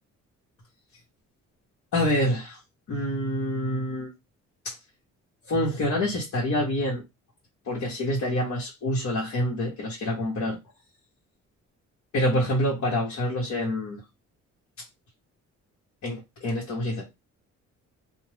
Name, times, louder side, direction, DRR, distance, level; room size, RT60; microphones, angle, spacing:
voice 1, 1.9-2.6 2.9-4.1 4.6-4.7 5.5-7.0 7.7-10.6 12.1-14.0 16.0-17.1, left 1 dB, 60° left, 1.0 m, -27 dB
2.5 x 2.0 x 3.2 m
cardioid pair, 90°, 30 cm